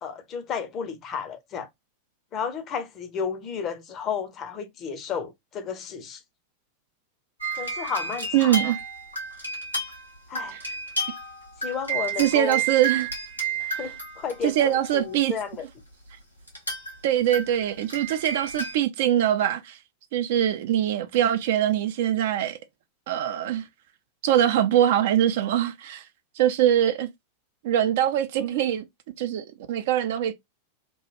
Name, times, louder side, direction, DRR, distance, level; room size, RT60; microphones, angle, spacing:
voice 1, 0.0-1.7 2.3-6.2 7.6-8.7 10.3-10.6 11.6-12.6 13.6-14.6 14.9-15.7 28.7-28.8, left 6 dB, 30° left, 0.7 m, -32 dB
sound 1, 7.4-15.1 16.5-17.0 17.3-18.8, right 4 dB, 85° left, 1.2 m, -31 dB
voice 2, 8.3-8.8 10.5-10.6 12.2-13.1 14.4-15.3 17.0-19.8 20.1-22.6 23.1-23.6 24.2-26.0 26.4-27.1 27.6-28.8 29.2-30.3, right 11 dB, 55° right, 0.4 m, -23 dB
3.0 x 2.2 x 3.0 m
figure-of-eight pair, 90°, 0 cm